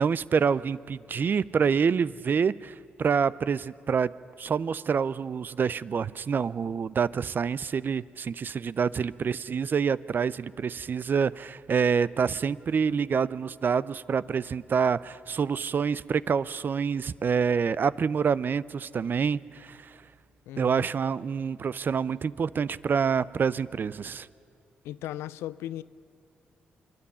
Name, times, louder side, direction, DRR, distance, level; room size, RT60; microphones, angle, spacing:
voice 1, 0.0-4.1 4.4-19.9 20.6-24.3, right 6 dB, 50° right, 19 dB, 0.5 m, -27 dB
voice 2, 20.5-20.9 24.8-25.8, left 13 dB, 85° left, 17 dB, 0.4 m, -37 dB
26.5 x 10.5 x 9.8 m, 2.7 s
supercardioid pair, 50°, 4 cm